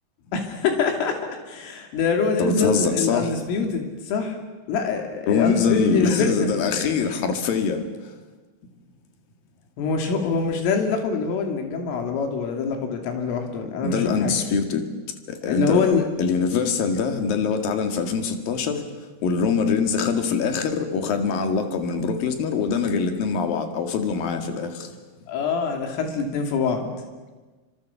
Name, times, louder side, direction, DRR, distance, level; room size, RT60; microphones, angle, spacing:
voice 1, 0.3-4.4 4.7-6.5 9.8-14.4 15.5-16.1 25.3-26.9, left 5 dB, 90° left, 3 dB, 5.3 m, -24 dB
voice 2, 2.4-3.3 5.3-7.8 13.8-14.9 15.3-15.9 16.2-18.9 19.2-24.9, left 5 dB, 55° left, 6 dB, 3.4 m, -23 dB
28.0 x 25.5 x 7.1 m, 1.3 s
omnidirectional pair, 5.6 m